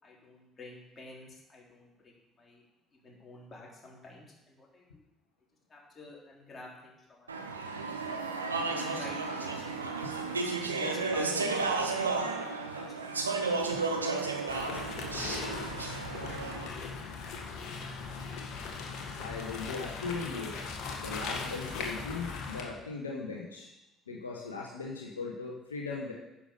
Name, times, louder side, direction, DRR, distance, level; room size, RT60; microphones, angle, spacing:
voice 1, 0.0-2.6 3.0-5.1 5.7-7.5 8.4-10.4 10.7-12.4 12.7-13.2, left 2 dB, 30° left, -3 dB, 3.9 m, -49 dB
Speech / Chatter, 7.3-16.7, right 3 dB, 90° right, 0.7 m, -33 dB
sound 1, 14.5-22.6, left 4 dB, 60° left, 1.7 m, -39 dB
voice 2, 19.1-20.6 21.0-23.7 24.1-26.1, left 4 dB, 85° left, -2 dB, 1.2 m, -38 dB
10.0 x 7.1 x 5.3 m, 0.94 s
figure-of-eight pair, 55°, 0 cm